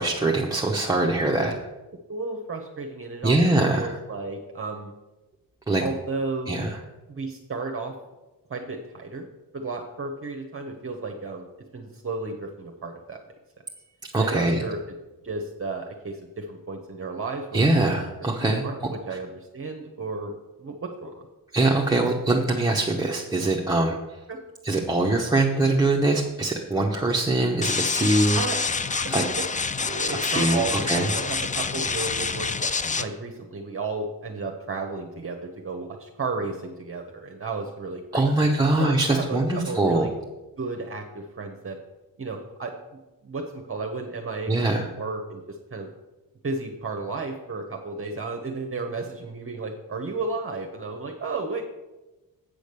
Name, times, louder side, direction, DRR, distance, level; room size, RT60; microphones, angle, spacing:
voice 1, 0.0-1.5 3.2-4.0 5.7-5.8 6.5-6.8 14.1-14.6 17.5-18.7 21.5-24.0 24.6-28.4 29.1-29.2 30.3-31.1 38.1-40.1 44.5-44.9, right 2 dB, 10° right, -2 dB, 0.9 m, -22 dB
voice 2, 2.1-3.4 3.7-4.9 5.8-6.7 7.1-8.0 8.5-9.3 9.5-11.5 11.7-13.2 14.2-14.8 15.2-17.7 18.0-18.1 18.6-21.2 24.3-24.4 28.3-28.6 29.0-29.4 29.8-38.3 38.7-40.1 40.6-41.8 42.2-42.7 43.2-45.9 46.4-51.6, right 3 dB, 35° right, 3 dB, 0.9 m, -33 dB
sound 1, 27.6-33.0, left 4 dB, 20° left, 0.4 m, -27 dB
8.5 x 5.1 x 6.6 m, 1.1 s
cardioid pair, 100°, 36 cm